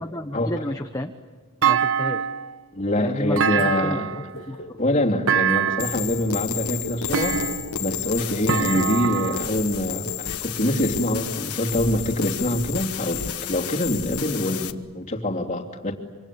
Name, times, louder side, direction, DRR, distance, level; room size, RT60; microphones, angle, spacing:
voice 1, 0.0-1.1 1.6-2.2 3.0-4.6, left 1 dB, 15° left, 5 dB, 0.9 m, -31 dB
Thump thud, 1.6-2.5 3.4-4.3 5.3-6.0 7.1-7.8 8.5-9.5, right 7 dB, 65° right, 1.1 m, -24 dB
voice 2, 2.7-4.1 4.8-7.4 7.8-15.9, left 1 dB, 30° left, 0 dB, 3.0 m, -25 dB
sound 1, 4.1-5.5 6.1-8.9 9.4-9.6 10.0-10.3 10.7-11.0 11.3-11.6 11.9-12.2, left 1 dB, 50° left, 1.9 m, -41 dB
sound 2, 5.8-14.7, left 9 dB, 90° left, 1.3 m, -31 dB
26.0 x 26.0 x 8.6 m, 1.5 s
head